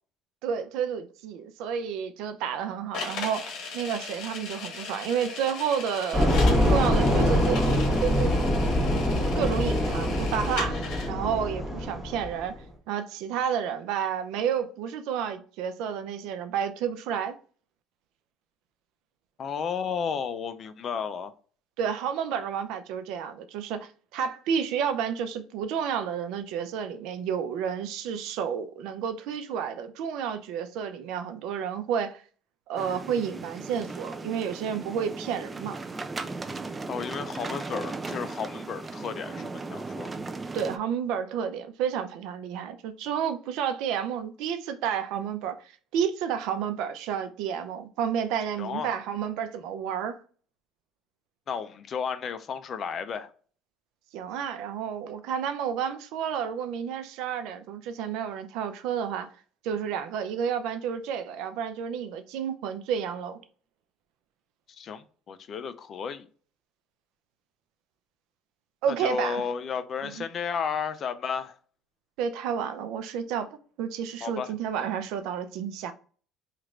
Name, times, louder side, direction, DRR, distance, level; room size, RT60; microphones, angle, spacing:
voice 1, 0.4-6.3 6.7-8.4 9.3-10.8 11.1-12.5 12.9-17.3 21.8-32.2 32.7-35.8 40.5-45.6 45.9-50.2 54.1-59.3 59.6-63.4 68.8-69.4 70.0-70.1 72.2-73.5 73.8-75.9, right 8 dB, 75° right, 0.5 m, -30 dB
sound 1, 2.9-11.1, left 4 dB, 70° left, 1.0 m, -38 dB
sound 2, 6.1-12.4, left 1 dB, 10° left, 1.5 m, -24 dB
voice 2, 19.4-21.3 36.9-40.1 48.6-48.9 51.5-53.3 64.7-66.3 68.9-71.6 74.2-74.5, left 6 dB, 45° left, 0.4 m, -33 dB
sound 3, 32.8-40.8, right 3 dB, 20° right, 0.4 m, -37 dB
3.0 x 2.5 x 4.3 m
cardioid pair, 105°, 0 cm